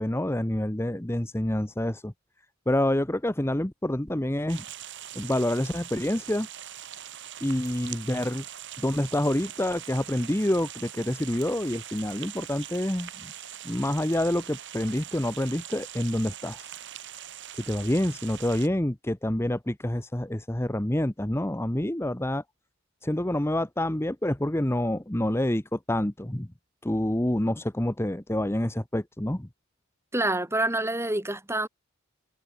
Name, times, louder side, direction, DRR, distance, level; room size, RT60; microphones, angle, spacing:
voice 1, 0.0-2.1 2.7-4.6 5.1-6.5 7.4-8.4 8.8-13.3 13.6-16.7 17.7-22.4 23.0-26.5 26.8-29.5, left 1 dB, 10° left, 1.0 m, -27 dB
sound 1, 4.5-18.7, right 11 dB, 55° right, 4.3 m, -42 dB
voice 2, 30.1-31.7, right 1 dB, 10° right, 2.9 m, -27 dB
head